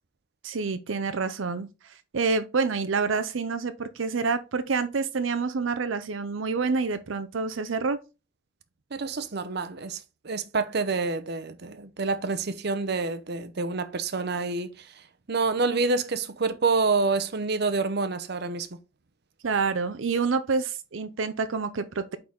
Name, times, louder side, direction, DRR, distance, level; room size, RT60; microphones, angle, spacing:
voice 1, 0.4-8.0 19.4-22.2, right 4 dB, 85° right, 0.6 m, -28 dB
voice 2, 8.9-10.0 10.2-14.9 15.3-18.7, right 4 dB, 60° right, 0.8 m, -27 dB
8.7 x 4.0 x 3.6 m
head